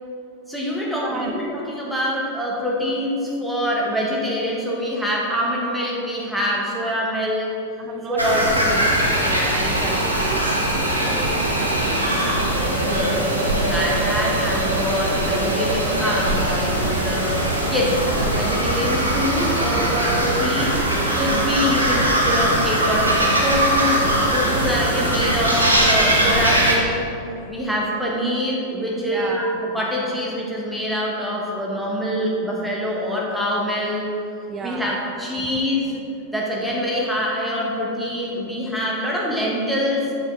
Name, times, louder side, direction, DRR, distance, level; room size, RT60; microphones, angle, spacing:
voice 1, 0.5-7.5 8.1-8.6 12.7-27.0 27.5-34.1 34.6-36.0 36.3-40.1, equal, ahead, -4 dB, 1.4 m, -25 dB
voice 2, 1.0-1.3 7.8-10.5 10.8-12.4 26.6-26.7 29.1-29.4 34.5-34.9, right 5 dB, 25° right, 3 dB, 0.3 m, -34 dB
sound 1, 8.2-26.7, right 1 dB, 85° right, 1.0 m, -21 dB
6.8 x 5.5 x 3.8 m, 2.7 s
figure-of-eight pair, 90°, 0 cm